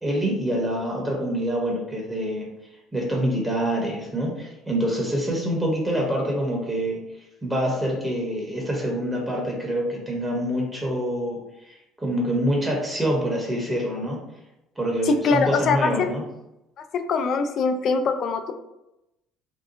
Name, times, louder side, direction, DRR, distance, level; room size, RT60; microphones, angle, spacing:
voice 1, 0.0-2.5 2.9-7.0 7.4-11.4 11.7-14.2 14.8-16.2, equal, 15° right, -1 dB, 0.9 m, -26 dB
voice 2, 15.0-16.1 16.9-18.5, left 4 dB, 55° left, 7 dB, 0.3 m, -23 dB
2.7 x 2.3 x 2.6 m, 0.89 s
hypercardioid pair, 65°, 0 cm